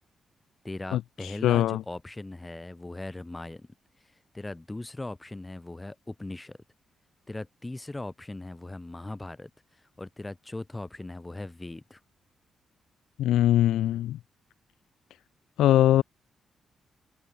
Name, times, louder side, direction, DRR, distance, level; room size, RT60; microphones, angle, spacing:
voice 1, 0.6-3.7 4.3-6.6 7.3-9.5 10.0-12.0, left 2 dB, 20° left, 3.7 m, -39 dB
voice 2, 1.4-1.8 13.2-14.2 15.6-16.0, left 13 dB, 80° left, 0.5 m, -21 dB
hypercardioid pair, 45°, 0 cm